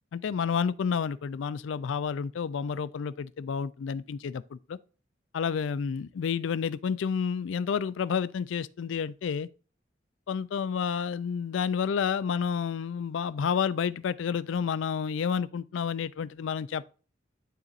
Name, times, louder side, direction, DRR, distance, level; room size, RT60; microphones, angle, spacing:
voice 1, 0.1-4.8 5.3-9.5 10.3-16.8, left 6 dB, 80° left, 0.4 m, -30 dB
11.5 x 4.0 x 2.5 m
head